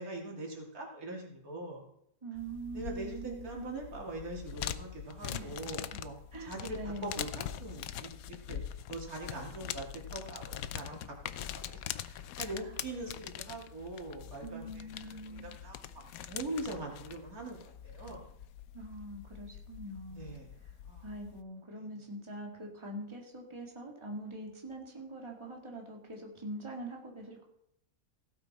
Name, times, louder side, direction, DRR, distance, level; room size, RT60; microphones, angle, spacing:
voice 1, 0.0-1.9 2.7-6.1 6.4-9.9 10.1-18.3 20.1-20.5 20.8-21.1 21.8-21.9, right 2 dB, 90° right, -1 dB, 3.1 m, -42 dB
voice 2, 2.2-3.5 5.3-5.7 6.3-7.2 14.4-15.6 18.7-20.4 21.0-27.4, right 1 dB, 20° right, 0 dB, 2.0 m, -43 dB
sound 1, 2.4-21.4, left 10 dB, 80° left, 1.1 m, -43 dB
16.0 x 8.9 x 4.2 m, 0.76 s
omnidirectional pair, 1.5 m